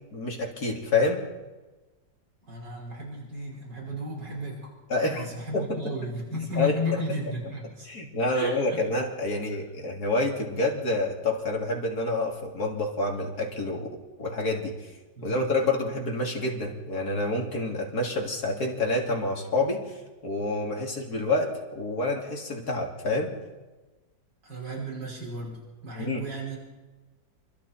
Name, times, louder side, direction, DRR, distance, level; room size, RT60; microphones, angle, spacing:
voice 1, 0.1-1.2 4.9-5.3 5.5-5.8 6.6-6.8 7.9-14.7 15.2-20.0 20.2-23.3 26.0-26.3, left 2 dB, 55° left, 1 dB, 3.6 m, -28 dB
voice 2, 2.5-4.7 5.1-7.9 8.3-8.8 15.2-15.5 24.4-26.6, left 1 dB, 70° right, -2 dB, 5.9 m, -34 dB
28.5 x 23.5 x 4.4 m, 1.2 s
omnidirectional pair, 2.0 m